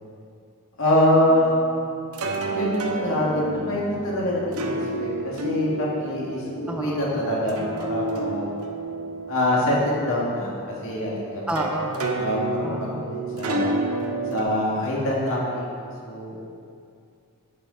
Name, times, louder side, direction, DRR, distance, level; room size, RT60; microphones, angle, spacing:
voice 1, 0.8-1.6 2.5-4.7 5.0-8.5 9.3-10.5 10.8-11.4 11.7-11.8 12.2-13.7 14.3-15.7 16.0-16.4, left 1 dB, 65° left, -5 dB, 2.0 m, -24 dB
sound 1, 1.1-14.4, right 2 dB, 85° right, 0.8 m, -31 dB
voice 2, 6.7-7.2 11.5-12.1 12.6-13.1, right 1 dB, 5° right, 2 dB, 0.3 m, -30 dB
10.5 x 5.5 x 4.0 m, 2.4 s
head